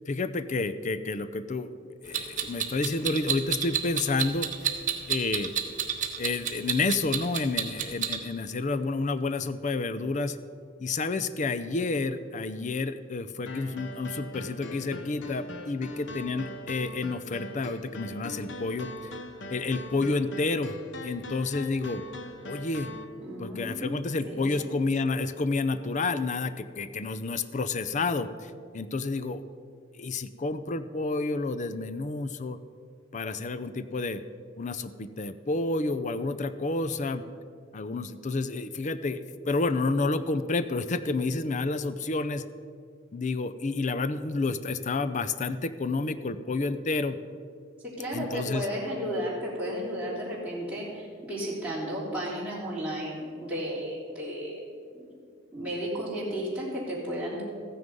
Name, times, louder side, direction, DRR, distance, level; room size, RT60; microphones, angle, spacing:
voice 1, 0.1-1.8 2.0-4.7 5.1-5.5 6.2-10.4 10.8-18.9 19.5-22.0 22.4-22.9 23.4-29.4 29.9-32.6 33.1-34.2 34.6-37.2 37.7-42.4 43.1-47.2 48.1-48.7, left 3 dB, 40° left, 13 dB, 0.5 m, -30 dB
Clock, 2.1-8.2, right 9 dB, 40° right, 1.2 m, -29 dB
sound 1, 13.5-23.0, left 1 dB, 70° left, 1.1 m, -41 dB
voice 2, 23.2-24.0 24.2-24.7 47.8-54.7 54.9-55.1 55.5-57.4, equal, 5° right, -9 dB, 3.3 m, -33 dB
14.5 x 9.7 x 5.3 m, 2.2 s
head